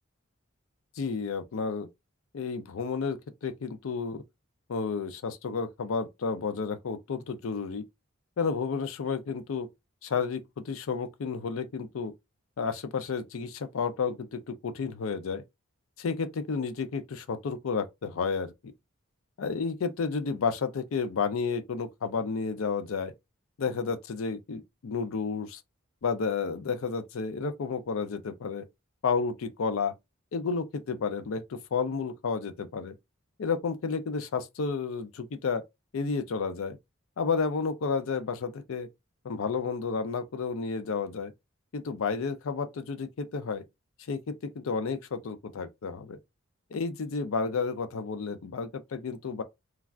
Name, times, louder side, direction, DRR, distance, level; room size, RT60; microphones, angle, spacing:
voice 1, 1.0-1.9 2.3-4.2 4.7-7.8 8.4-9.7 10.0-12.1 12.6-15.4 16.0-18.5 19.4-23.1 23.6-25.6 26.0-28.6 29.0-29.9 30.3-32.9 33.4-35.6 35.9-36.8 37.2-38.9 39.2-41.3 41.7-43.6 44.0-46.2 46.7-49.4, left 5 dB, 75° left, 0.4 m, -31 dB
3.2 x 2.3 x 2.4 m
head